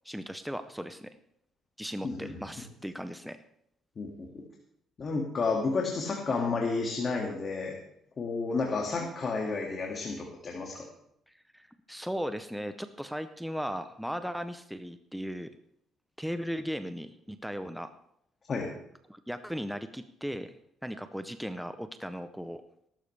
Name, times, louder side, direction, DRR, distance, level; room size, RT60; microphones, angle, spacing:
voice 1, 0.0-1.1 1.8-3.4 11.3-15.5 16.2-18.0 19.1-22.6, equal, ahead, 9 dB, 0.6 m, -37 dB
voice 2, 4.0-4.3 5.0-7.7 8.2-10.8 18.5-18.7, left 4 dB, 35° left, 0 dB, 2.0 m, -31 dB
18.5 x 12.0 x 3.3 m, 0.73 s
cardioid pair, 140°, 0 cm